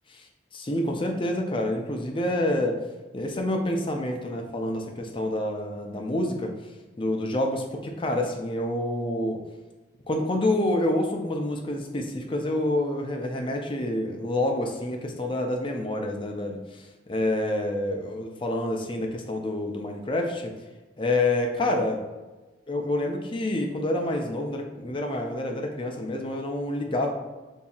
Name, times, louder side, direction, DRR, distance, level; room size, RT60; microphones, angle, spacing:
voice 1, 0.5-2.8 3.1-6.5 7.0-9.4 10.1-20.5 21.0-22.1 22.7-27.1, left 1 dB, 25° left, 3 dB, 0.5 m, -28 dB
6.9 x 2.7 x 2.4 m, 1.2 s
head